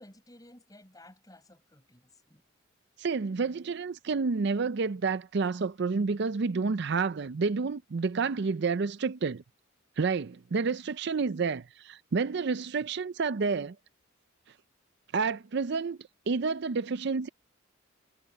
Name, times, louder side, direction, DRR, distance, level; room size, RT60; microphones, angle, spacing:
voice 1, 0.0-2.4, left 1 dB, 20° left, 6.1 m, -55 dB
voice 2, 3.0-9.4 10.0-13.8 15.1-16.0 16.3-17.3, right 4 dB, 55° right, 0.5 m, -29 dB
head